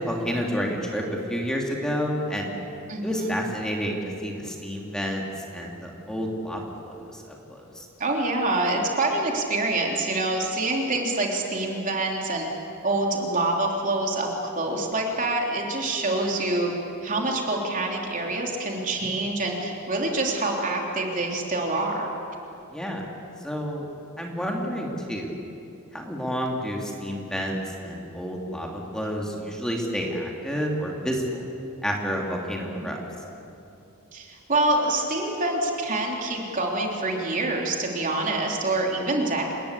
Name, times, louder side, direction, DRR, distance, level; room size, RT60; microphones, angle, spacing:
voice 1, 0.0-2.5 3.0-5.2 5.5-7.2 7.5-7.8 22.7-23.0 23.4-23.9 24.2-25.3 25.9-31.4 31.8-33.0, equal, 5° left, -1 dB, 2.9 m, -29 dB
voice 2, 2.9-3.5 8.0-12.5 12.8-14.3 14.6-16.7 17.0-22.1 32.8-32.9 34.1-39.5, right 2 dB, 40° right, 0 dB, 3.4 m, -26 dB
28.0 x 20.5 x 8.4 m, 2.8 s
head